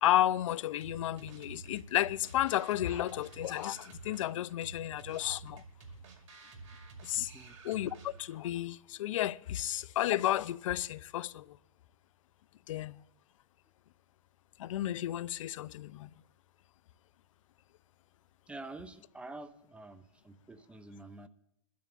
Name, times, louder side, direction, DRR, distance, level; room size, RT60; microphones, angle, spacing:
voice 1, 0.0-5.6 7.0-7.3 7.6-11.6 12.7-13.0 14.6-16.1, left 13 dB, 65° left, 0.5 m, -32 dB
sound 1, 0.8-8.4, right 4 dB, 65° right, 2.3 m, -50 dB
voice 2, 18.5-21.3, right 2 dB, 5° right, 0.5 m, -47 dB
22.0 x 12.0 x 2.5 m
hypercardioid pair, 125°, 18 cm